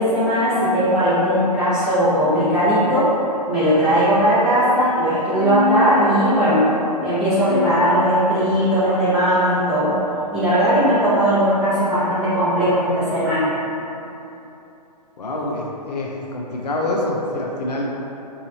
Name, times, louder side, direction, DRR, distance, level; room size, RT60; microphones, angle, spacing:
voice 1, 0.0-3.1 3.5-6.7 7.0-10.0 10.3-13.5, equal, ahead, -15 dB, 1.2 m, -18 dB
sound 1, 5.1-8.6, left 2 dB, 55° left, 1.1 m, -27 dB
voice 2, 15.2-17.8, left 1 dB, 75° left, -2 dB, 0.6 m, -26 dB
3.9 x 2.9 x 2.8 m, 2.9 s
figure-of-eight pair, 135°, 21 cm